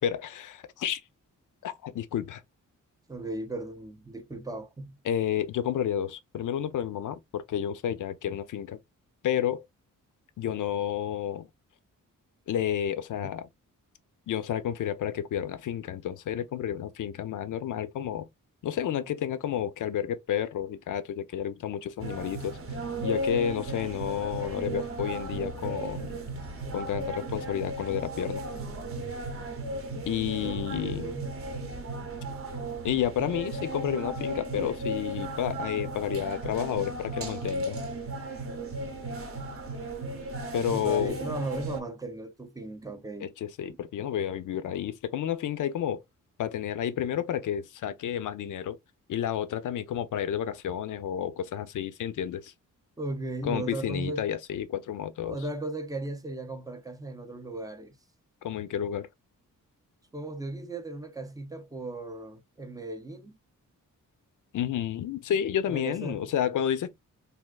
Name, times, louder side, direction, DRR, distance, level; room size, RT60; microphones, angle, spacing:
voice 1, 0.0-1.0 1.6-2.4 5.1-8.8 9.2-9.6 10.4-11.5 12.5-13.5 14.3-18.3 18.6-22.6 23.0-26.2 26.7-28.4 30.0-31.1 32.8-37.8 40.5-41.2 43.2-46.0 46.4-48.8 49.1-52.5 53.4-55.4 58.4-59.1 64.5-66.9, left 10 dB, 65° left, 0.5 m, -31 dB
voice 2, 3.1-5.0 30.4-31.3 35.0-35.1 40.7-43.3 43.7-43.8 53.0-54.3 55.2-58.0 60.1-63.3 65.7-66.3, right 2 dB, 10° right, 0.3 m, -36 dB
sound 1, 22.0-41.8, right 2 dB, 40° right, 0.7 m, -35 dB
3.4 x 2.4 x 2.2 m
wide cardioid pair, 165°, 33 cm